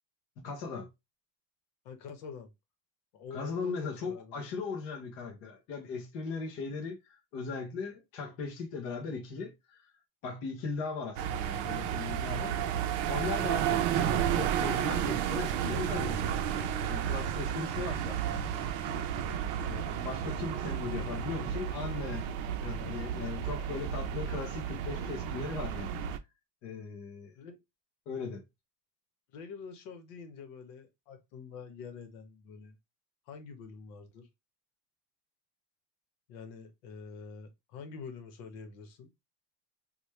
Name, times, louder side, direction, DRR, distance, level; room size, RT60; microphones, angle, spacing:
voice 1, 0.4-0.9 3.3-9.9 10.2-12.5 13.1-19.1 19.7-22.3 22.6-26.0 26.6-27.3 28.1-28.4, left 4 dB, 30° left, 0.3 m, -38 dB
voice 2, 1.8-2.5 3.1-4.4 12.3-12.8 23.2-23.3 27.3-27.6 29.3-32.7 33.3-34.3 36.3-39.1, left 5 dB, 65° left, 1.0 m, -46 dB
sound 1, 11.2-26.2, right 9 dB, 65° right, 0.6 m, -32 dB
3.0 x 2.2 x 3.0 m
cardioid pair, 175°, 49 cm